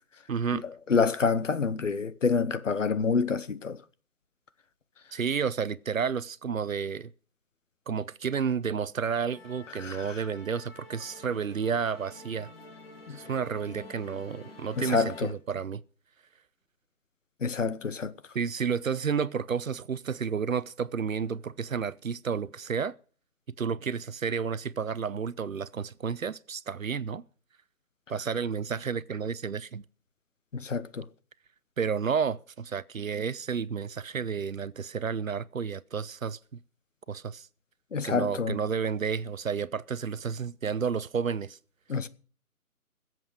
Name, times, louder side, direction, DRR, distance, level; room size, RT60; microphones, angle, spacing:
voice 1, 0.3-0.6 5.1-7.1 7.9-12.5 13.1-15.8 18.3-22.9 23.6-27.2 28.1-29.8 31.8-36.6 37.1-37.5 38.0-41.6, right 6 dB, 65° right, 0.8 m, -31 dB
voice 2, 0.9-3.8 9.8-10.1 13.1-13.2 14.8-15.3 17.4-18.1 30.5-31.0 37.9-38.6 41.9-42.1, left 5 dB, 55° left, 1.1 m, -27 dB
Musical instrument, 9.3-15.3, left 2 dB, 40° left, 2.3 m, -49 dB
21.5 x 7.8 x 5.0 m
figure-of-eight pair, 155°, 44 cm